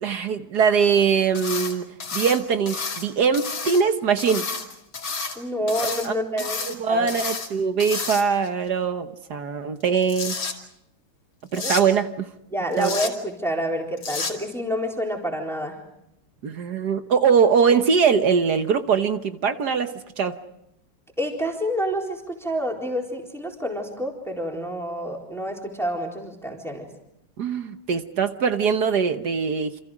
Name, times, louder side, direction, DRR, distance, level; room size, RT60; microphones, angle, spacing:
voice 1, 0.0-4.5 6.0-6.1 6.4-10.4 11.5-12.3 12.8-13.0 16.4-20.4 27.4-29.7, right 6 dB, 55° right, 9 dB, 1.5 m, -22 dB
sound 1, 1.3-1.7 2.0-3.1 3.3-3.8 4.2-5.4 5.7-6.1 6.4-6.8 7.1-7.5 7.8-8.5 9.8-10.5 11.5-11.8 12.7-13.1 14.0-14.3, left 4 dB, 65° left, 3.4 m, -30 dB
voice 2, 5.4-6.6 6.9-7.1 11.6-11.9 12.5-15.8 21.2-26.9, equal, ahead, 0 dB, 4.0 m, -28 dB
28.5 x 27.5 x 5.0 m, 0.81 s
omnidirectional pair, 2.4 m